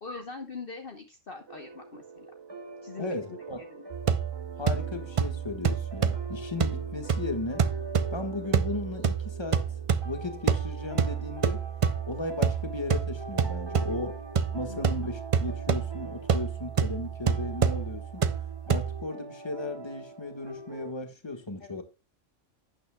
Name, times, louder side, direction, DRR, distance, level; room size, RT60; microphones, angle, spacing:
voice 1, 0.0-2.3 2.8-3.8 13.7-14.0 14.6-14.8 21.6-21.8, left 4 dB, 45° left, 1.2 m, -42 dB
sound 1, 1.5-20.9, right 2 dB, 25° right, 0.7 m, -43 dB
voice 2, 3.0-3.6 4.6-7.7 8.1-11.6 12.1-14.2 14.5-18.2 18.7-21.8, left 2 dB, 20° left, 1.5 m, -36 dB
sound 2, 3.9-19.0, right 6 dB, 55° right, 0.3 m, -29 dB
12.0 x 8.9 x 2.3 m
omnidirectional pair, 1.3 m